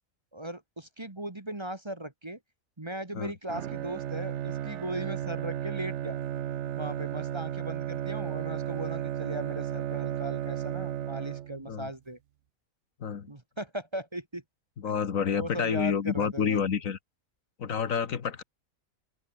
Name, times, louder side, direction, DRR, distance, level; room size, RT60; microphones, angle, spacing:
voice 1, 0.3-2.4 2.8-6.2 6.7-12.2 13.3-14.4 14.8-16.7, right 1 dB, 20° right, 1.5 m, -38 dB
Bowed string instrument, 3.5-11.8, right 11 dB, 60° right, 0.9 m, -34 dB
voice 2, 13.0-13.3 14.8-17.0 17.6-18.4, left 7 dB, 75° left, 1.8 m, -29 dB
open air
omnidirectional pair, 1.4 m